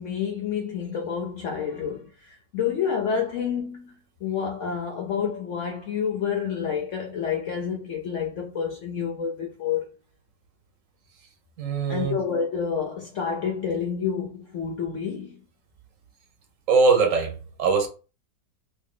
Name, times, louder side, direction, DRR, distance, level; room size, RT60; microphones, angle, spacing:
voice 1, 0.0-9.9 11.9-15.4, left 7 dB, 70° left, 0.7 m, -29 dB
voice 2, 11.6-12.2 16.7-17.3 17.6-17.9, right 4 dB, 60° right, 1.0 m, -21 dB
2.9 x 2.6 x 3.7 m
omnidirectional pair, 1.9 m